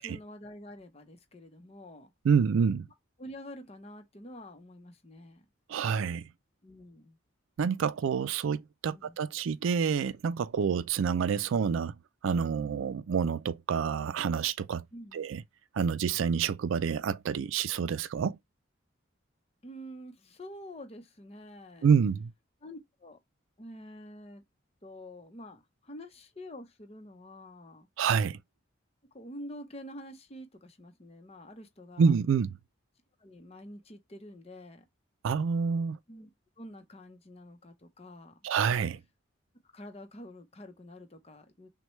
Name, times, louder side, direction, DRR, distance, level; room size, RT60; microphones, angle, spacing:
voice 1, 0.0-2.1 3.2-5.4 6.6-7.2 8.9-9.2 14.9-15.2 19.6-21.9 22.6-23.2 23.6-24.4 24.8-27.9 29.1-32.1 33.2-34.8 36.1-36.3 36.6-38.4 39.7-41.7, equal, 30° left, 0.7 m, -47 dB
voice 2, 2.2-2.9 5.7-6.3 7.6-11.9 12.2-14.8 15.1-15.4 15.7-18.4 21.8-22.3 28.0-28.4 32.0-32.5 35.2-36.0 38.4-39.0, right 6 dB, 85° right, 0.4 m, -27 dB
6.3 x 2.2 x 3.1 m
head